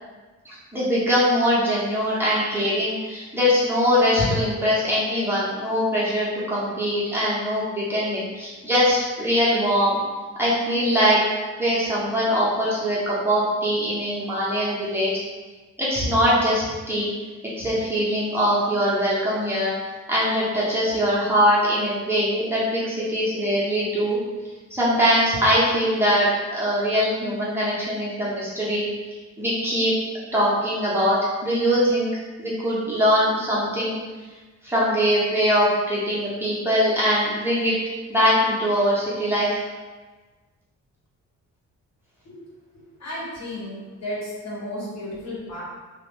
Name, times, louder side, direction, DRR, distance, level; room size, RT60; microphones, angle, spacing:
voice 1, 0.4-10.0 10.4-11.2 11.6-15.1 15.8-17.1 17.6-19.7 20.1-24.2 24.7-28.9 29.4-29.9 30.3-32.1 32.4-34.0 34.6-37.8 38.1-39.6, equal, 10° right, -8 dB, 1.0 m, -22 dB
voice 2, 43.0-45.6, left 1 dB, 65° left, -7 dB, 1.4 m, -33 dB
3.0 x 2.3 x 3.6 m, 1.3 s
cardioid pair, 105°, 29 cm